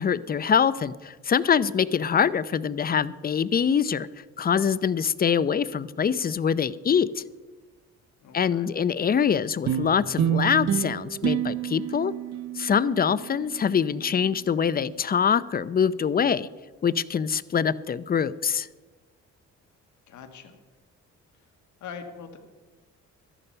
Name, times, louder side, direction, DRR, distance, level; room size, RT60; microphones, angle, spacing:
voice 1, 0.0-4.1 4.4-7.2 8.3-12.1 12.6-16.5 16.8-18.7, left 7 dB, 30° left, 17 dB, 0.5 m, -24 dB
voice 2, 8.2-8.7 20.1-20.6 21.8-22.4, left 6 dB, 75° left, 6 dB, 1.8 m, -42 dB
sound 1, 9.7-14.3, right 9 dB, 60° right, 0.9 m, -29 dB
13.0 x 11.0 x 5.6 m, 1.3 s
cardioid pair, 90°, 30 cm